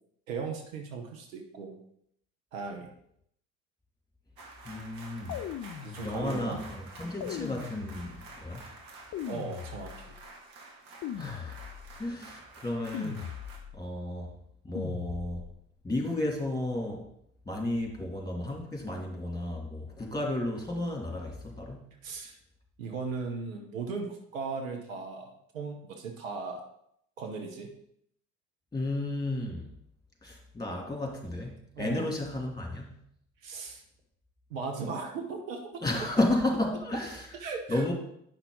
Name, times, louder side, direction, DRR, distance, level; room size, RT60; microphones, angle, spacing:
voice 1, 0.3-1.8 2.5-2.9 5.8-6.6 9.3-10.2 22.0-22.4 22.8-26.6 27.2-27.7 31.7-32.1 33.4-33.8 34.5-35.6 37.4-37.9, right 4 dB, 80° right, 3 dB, 1.2 m, -37 dB
sound 1, 4.4-13.6, right 3 dB, 60° right, 1.6 m, -49 dB
voice 2, 4.6-5.4 6.0-8.6 11.1-11.6 12.0-13.3 13.7-14.3 14.6-15.4 15.8-17.1 17.5-21.9 28.7-29.7 30.2-32.9 35.8-37.3 37.7-37.9, left 1 dB, 10° left, 0 dB, 2.6 m, -33 dB
sound 2, 5.3-6.5 7.2-8.4 9.1-10.2 11.0-12.0 12.9-13.9 14.7-15.6, left 9 dB, 45° left, 0.6 m, -40 dB
8.9 x 5.8 x 3.8 m, 0.72 s
hypercardioid pair, 55°, 39 cm